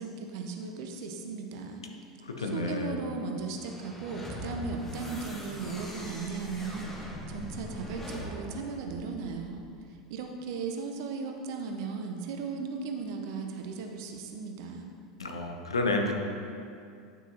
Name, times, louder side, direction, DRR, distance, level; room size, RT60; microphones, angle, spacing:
voice 1, 0.0-1.8 2.4-6.9 7.3-9.6 10.1-14.8, right 4 dB, 55° right, 3 dB, 0.7 m, -36 dB
voice 2, 2.4-3.0 15.2-16.1, left 2 dB, 75° left, 3 dB, 0.7 m, -30 dB
sound 1, 3.5-9.8, equal, 10° left, 1.1 m, -41 dB
9.2 x 6.1 x 2.8 m, 2.4 s
figure-of-eight pair, 80°, 3 cm